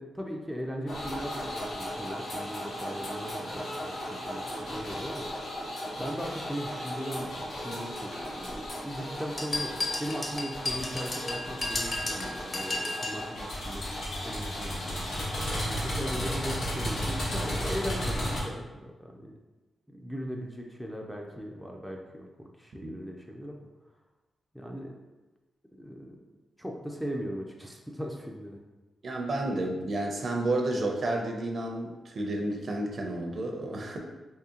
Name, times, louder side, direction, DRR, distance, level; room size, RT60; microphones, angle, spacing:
voice 1, 0.0-3.9 4.3-5.3 6.0-7.3 7.6-13.8 14.2-15.0 15.7-19.4 19.9-23.6 24.5-24.9 25.8-26.2 26.6-28.6, equal, ahead, 0 dB, 0.3 m, -38 dB
sound 1, 0.9-18.4, equal, 75° left, 1.1 m, -35 dB
sound 2, 9.4-13.2, left 2 dB, 35° left, 0.6 m, -33 dB
voice 2, 29.0-34.0, right 2 dB, 50° right, 2 dB, 0.5 m, -31 dB
3.6 x 3.1 x 2.8 m, 1.1 s
wide cardioid pair, 135°, 0 cm